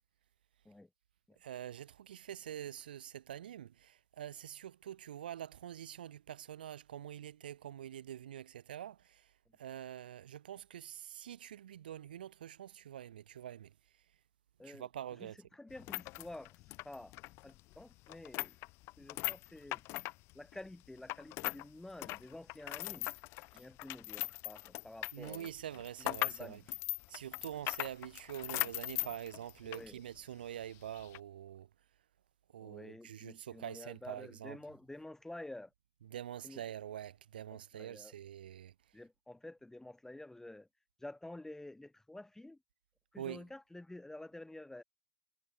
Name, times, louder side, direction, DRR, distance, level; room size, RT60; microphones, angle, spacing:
voice 1, 1.4-9.3 9.6-13.7 14.6-15.4 23.5-23.6 25.1-26.6 27.1-31.7 32.5-34.6 36.0-38.7 43.2-43.4, right 10 dB, 85° right, 1.4 m, -46 dB
voice 2, 15.2-16.6 16.8-17.1 17.4-18.6 19.0-19.8 20.3-23.1 23.5-25.5 26.0-26.6 29.6-30.0 32.6-35.7 36.4-36.6 37.7-38.1 38.9-40.7 41.0-42.6 43.1-44.8, left 1 dB, 10° left, 0.7 m, -50 dB
sound 1, 15.7-21.7 21.9-29.9 30.2-30.3 31.0-31.2, left 21 dB, 60° left, 0.7 m, -40 dB
hypercardioid pair, 70°, 5 cm